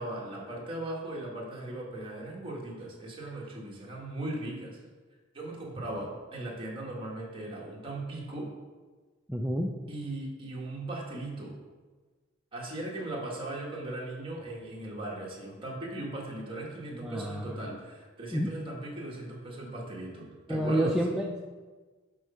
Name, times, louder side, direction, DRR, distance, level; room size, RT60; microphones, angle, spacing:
voice 1, 0.0-4.8 5.3-8.5 9.9-11.5 12.5-21.0, right 2 dB, 25° right, -3 dB, 1.6 m, -38 dB
voice 2, 9.3-9.7 16.9-17.6 18.3-18.5 20.5-21.4, equal, 5° right, -1 dB, 0.4 m, -29 dB
6.1 x 4.7 x 5.6 m, 1.4 s
head